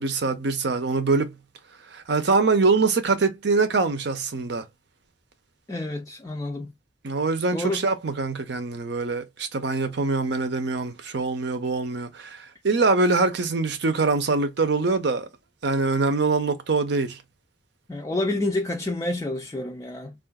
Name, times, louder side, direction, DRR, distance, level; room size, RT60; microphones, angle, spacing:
voice 1, 0.0-1.3 1.9-4.6 7.0-15.3 15.6-17.2, right 3 dB, 70° right, 0.7 m, -24 dB
voice 2, 5.7-6.7 7.5-7.9 17.9-20.1, left 2 dB, 20° left, 0.4 m, -28 dB
3.7 x 2.4 x 2.3 m
head